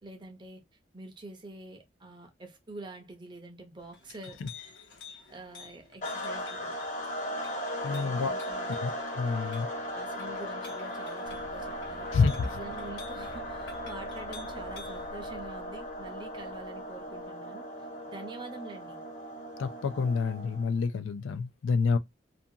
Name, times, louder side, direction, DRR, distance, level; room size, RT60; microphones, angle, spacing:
voice 1, 0.0-0.6 0.9-4.5 5.3-6.8 7.8-8.7 9.9-12.1 12.5-19.0, right 2 dB, 25° right, 0.5 m, -46 dB
Chink clink, 3.8-15.1, left 5 dB, 70° left, 1.0 m, -51 dB
sound 1, 6.0-20.8, equal, 40° left, 0.9 m, -37 dB
voice 2, 7.8-8.3 8.8-9.7 12.1-12.5 19.6-22.0, left 5 dB, 90° left, 0.4 m, -28 dB
sound 2, 11.3-17.2, right 2 dB, 70° right, 0.6 m, -51 dB
2.5 x 2.3 x 2.7 m
head